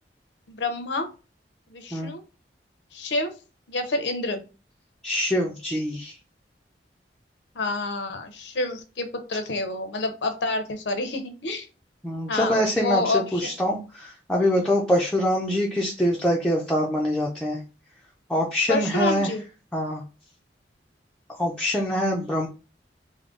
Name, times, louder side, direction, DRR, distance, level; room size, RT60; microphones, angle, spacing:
voice 1, 0.5-1.1 1.7-2.2 2.9-3.3 3.7-4.4 7.6-11.7 12.3-13.5 18.7-19.4, left 2 dB, 85° left, 7 dB, 0.7 m, -28 dB
voice 2, 5.0-6.2 12.0-17.6 18.3-19.3 19.7-20.0 21.3-22.5, equal, 5° left, -2 dB, 0.5 m, -24 dB
3.7 x 2.1 x 3.6 m, 0.32 s
head